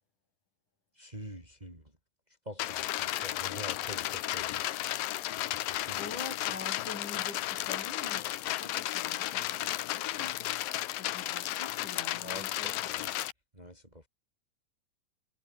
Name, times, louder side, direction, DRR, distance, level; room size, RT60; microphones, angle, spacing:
voice 1, 1.0-1.8 2.5-4.6 5.3-6.0 12.2-13.1 13.5-14.0, equal, 10° right, 5.7 m, -46 dB
sound 1, 2.6-13.3, left 15 dB, 70° left, 2.5 m, -34 dB
voice 2, 5.9-10.4 11.0-12.8, left 4 dB, 50° left, 6.7 m, -45 dB
omnidirectional pair, 4.6 m